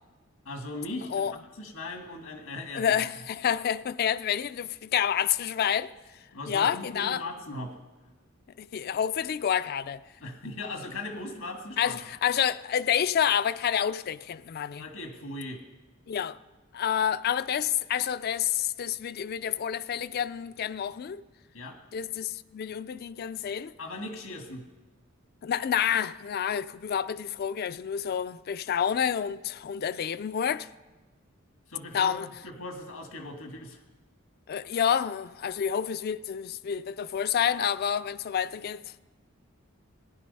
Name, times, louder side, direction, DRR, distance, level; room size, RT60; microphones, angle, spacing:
voice 1, 0.5-1.2 1.6-3.0 6.3-7.8 10.2-12.0 14.8-15.6 21.5-21.8 23.8-24.6 31.7-33.8, left 2 dB, 90° left, 1.8 m, -38 dB
voice 2, 2.8-5.9 6.5-7.2 8.6-10.0 11.8-14.9 16.1-16.4 16.7-21.2 21.9-23.7 25.4-30.7 31.9-32.3 34.5-38.8, left 8 dB, 50° left, 0.3 m, -28 dB
16.0 x 10.0 x 5.4 m
head